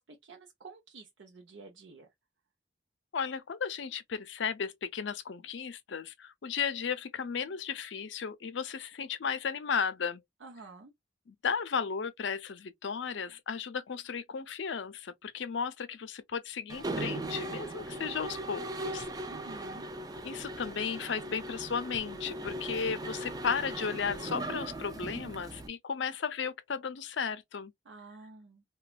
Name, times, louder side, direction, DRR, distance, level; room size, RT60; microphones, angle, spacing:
voice 1, 0.0-2.1 10.4-10.9 19.3-19.8 27.8-28.6, right 3 dB, 85° right, 0.6 m, -50 dB
voice 2, 3.1-10.2 11.3-19.1 20.2-27.7, left 6 dB, 80° left, 0.5 m, -35 dB
Mechanisms, 16.7-25.7, right 1 dB, 20° right, 0.3 m, -39 dB
3.0 x 2.2 x 2.3 m
head